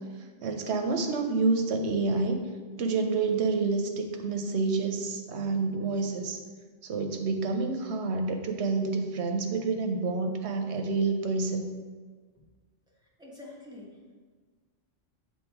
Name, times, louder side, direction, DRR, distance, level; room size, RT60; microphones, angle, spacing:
voice 1, 0.4-2.4 2.8-6.4 6.8-11.7, right 3 dB, 85° right, 5 dB, 1.0 m, -28 dB
voice 2, 13.2-14.2, left 2 dB, 5° right, -6 dB, 1.2 m, -46 dB
7.3 x 3.0 x 4.5 m, 1.5 s
omnidirectional pair, 1.1 m